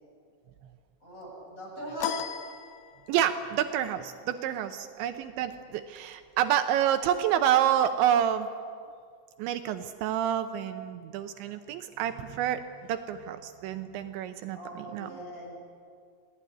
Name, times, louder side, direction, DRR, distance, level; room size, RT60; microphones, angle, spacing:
voice 1, 1.0-2.2 14.5-15.5, right 1 dB, 15° left, -3 dB, 8.3 m, -40 dB
sound 1, 2.0-3.4, left 10 dB, 75° left, 2.3 m, -35 dB
voice 2, 3.1-8.5 9.4-15.2, right 10 dB, 80° right, 8 dB, 3.1 m, -28 dB
27.5 x 19.0 x 9.7 m, 2.1 s
omnidirectional pair, 5.4 m